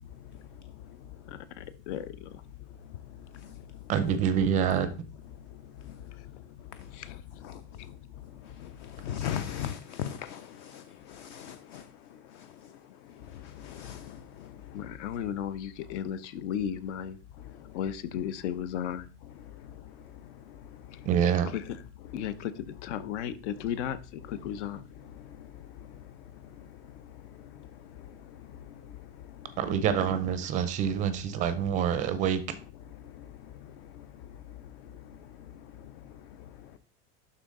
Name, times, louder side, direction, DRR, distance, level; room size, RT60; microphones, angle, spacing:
voice 1, 1.3-2.4 6.9-7.2 14.7-17.2 17.7-19.1 20.9-21.0 21.5-21.8 22.1-24.8 30.0-30.2, left 9 dB, 70° left, 0.9 m, -35 dB
voice 2, 3.9-4.9 21.1-21.5 29.6-32.4, right 8 dB, 20° right, 0.5 m, -26 dB
voice 3, 9.0-11.8 13.4-14.2, left 10 dB, 45° left, 0.5 m, -37 dB
11.5 x 3.9 x 3.7 m
supercardioid pair, 175°, 36 cm